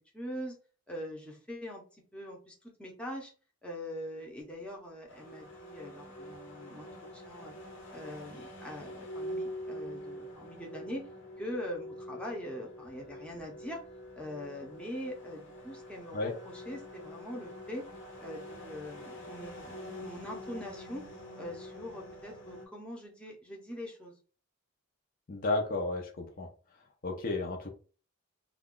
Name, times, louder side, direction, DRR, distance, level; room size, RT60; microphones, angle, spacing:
voice 1, 0.1-0.6 0.9-1.8 2.1-3.3 3.6-6.9 7.1-7.5 7.9-11.1 11.4-13.8 14.1-17.8 18.2-21.1 21.3-24.2, equal, 5° left, -1 dB, 0.7 m, -42 dB
sound 1, 5.1-22.7, equal, 60° left, 0.9 m, -45 dB
voice 2, 25.3-26.5 27.0-27.7, left 2 dB, 45° left, 2 dB, 0.5 m, -32 dB
2.4 x 2.2 x 3.6 m, 0.37 s
head